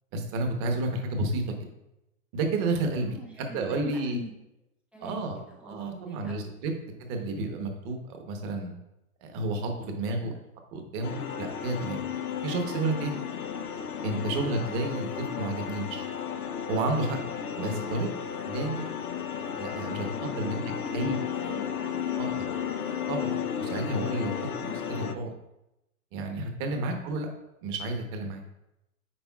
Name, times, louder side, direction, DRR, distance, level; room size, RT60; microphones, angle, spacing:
voice 1, 0.1-1.5 2.3-4.2 5.0-5.4 5.6-6.7 7.0-8.7 9.2-10.3 10.7-12.0 12.4-13.1 14.0-16.1 16.7-17.2 17.6-18.1 18.5-18.9 19.6-20.6 20.9-21.2 22.2-22.5 23.1-24.3 24.6-25.3 26.1-27.3 27.6-28.4, right 2 dB, 30° right, 4 dB, 1.1 m, -31 dB
voice 2, 3.1-4.3 4.9-6.5 10.0-10.4 17.7-18.2 20.2-20.4 20.7-22.5 26.7-26.8, equal, 5° right, -3 dB, 0.5 m, -44 dB
sound 1, 11.0-25.1, left 8 dB, 90° left, 0.8 m, -33 dB
8.6 x 5.1 x 2.4 m, 0.87 s
hypercardioid pair, 140°, 43 cm